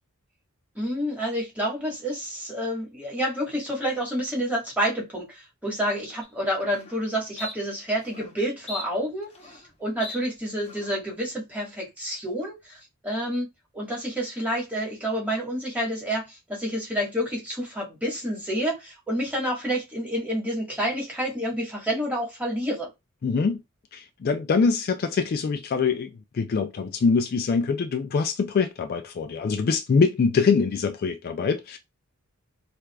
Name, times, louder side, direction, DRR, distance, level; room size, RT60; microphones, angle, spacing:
voice 1, 0.7-9.3 9.8-13.5 13.7-22.9, equal, 5° right, 1.3 m, -29 dB
sound 1, 6.2-6.3 6.7-7.0 7.4-7.5 8.0-8.3 8.7-9.7 10.0-10.2 10.6-11.0, left 2 dB, 30° left, 0.8 m, -39 dB
voice 2, 23.2-23.6 23.9-31.8, left 5 dB, 45° left, 0.3 m, -24 dB
4.6 x 2.5 x 2.2 m
head